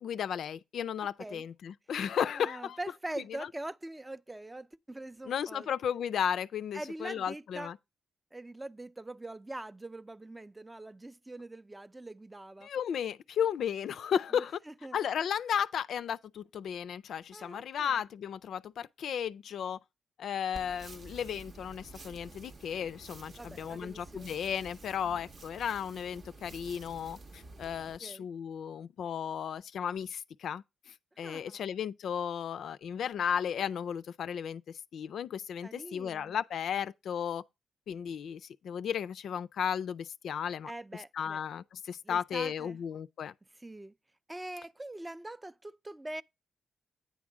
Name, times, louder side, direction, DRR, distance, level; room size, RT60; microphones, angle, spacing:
voice 1, 0.0-2.8 5.3-7.8 12.6-14.6 14.9-19.8 20.2-37.4 37.9-40.7 41.1-43.3, left 8 dB, 75° left, 0.3 m, -34 dB
voice 2, 2.1-5.7 6.7-7.7 8.3-12.7 14.3-15.0 17.3-18.0 23.4-24.3 25.0-25.2 28.0-28.3 31.2-31.6 35.6-36.4 40.5-41.4 42.0-42.8 43.6-43.9 44.3-46.2, right 1 dB, 15° right, 0.4 m, -43 dB
sound 1, 20.5-28.0, right 3 dB, 50° right, 0.7 m, -50 dB
9.3 x 3.6 x 6.0 m
cardioid pair, 65°, 0 cm